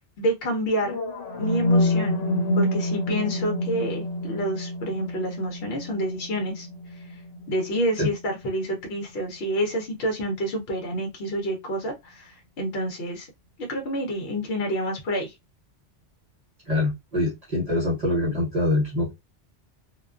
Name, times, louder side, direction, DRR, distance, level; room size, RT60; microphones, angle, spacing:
voice 1, 0.2-1.0 1.4-2.2 2.6-6.7 7.5-13.3 13.6-15.3, equal, 60° left, 0.8 m, -28 dB
sound 1, 0.8-8.8, left 1 dB, 85° left, 1.0 m, -28 dB
voice 2, 16.7-19.1, left 2 dB, 35° right, 1.0 m, -24 dB
2.4 x 2.2 x 2.3 m
omnidirectional pair, 1.2 m